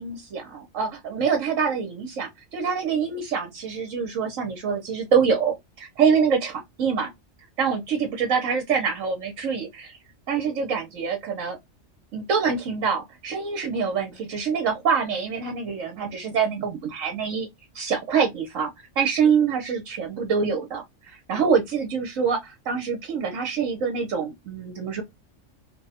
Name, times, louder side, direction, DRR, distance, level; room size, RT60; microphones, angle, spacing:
voice 1, 0.0-7.1 7.6-9.9 10.3-11.6 12.1-17.5 17.7-18.7 19.0-25.0, right 6 dB, 75° right, 1.2 m, -25 dB
3.0 x 2.3 x 4.1 m
omnidirectional pair, 1.3 m